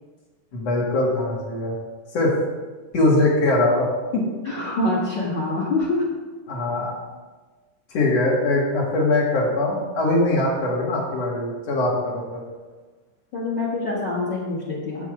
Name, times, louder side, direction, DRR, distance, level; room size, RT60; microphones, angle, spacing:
voice 1, 0.5-1.7 2.1-2.3 2.9-3.9 4.1-4.2 6.5-6.9 7.9-12.4, left 2 dB, 60° left, -3 dB, 2.9 m, -21 dB
voice 2, 4.4-6.0 13.3-15.1, left 2 dB, 45° left, -5 dB, 2.0 m, -25 dB
8.2 x 7.1 x 4.9 m, 1.3 s
omnidirectional pair, 3.4 m